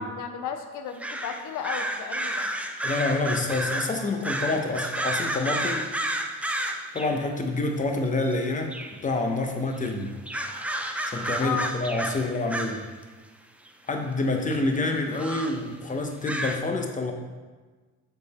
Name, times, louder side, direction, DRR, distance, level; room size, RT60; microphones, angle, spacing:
voice 1, 0.0-2.5 11.4-11.7, left 6 dB, 85° left, 6 dB, 0.6 m, -33 dB
sound 1, 1.0-7.3 8.3-8.4 8.7-9.0 9.8-9.9 10.3-13.0 13.7-13.8 14.5-14.6 15.1-15.6 16.3-16.6, right 1 dB, 5° right, 0.5 m, -31 dB
voice 2, 2.8-5.9 6.9-8.7 9.0-10.1 11.1-12.8 13.9-17.1, left 2 dB, 25° left, 4 dB, 0.8 m, -27 dB
6.8 x 4.0 x 4.2 m, 1.4 s
cardioid pair, 90°, 30 cm